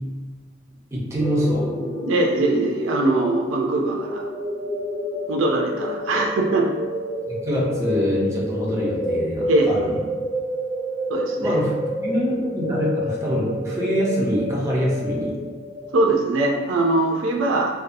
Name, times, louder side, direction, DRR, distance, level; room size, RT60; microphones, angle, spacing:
voice 1, 0.9-1.7 7.3-10.0 11.4-11.7 12.0-15.4, equal, 15° right, -5 dB, 0.5 m, -24 dB
sound 1, 1.2-15.9, left 1 dB, 25° left, 0.9 m, -28 dB
voice 2, 2.1-4.2 5.3-6.7 9.5-9.7 11.1-11.6 15.9-17.8, right 2 dB, 75° right, 0 dB, 0.4 m, -21 dB
2.6 x 2.2 x 2.5 m, 1.3 s
head